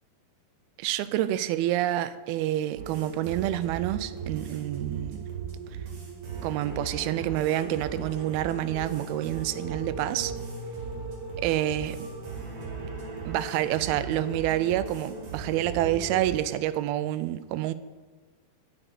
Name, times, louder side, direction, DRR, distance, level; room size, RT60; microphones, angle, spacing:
voice 1, 0.8-5.2 6.4-10.3 11.4-12.0 13.3-17.7, right 13 dB, 85° right, 2.5 m, -28 dB
sound 1, 2.7-16.4, right 4 dB, 55° right, 3.4 m, -37 dB
8.8 x 7.0 x 8.1 m
omnidirectional pair, 4.3 m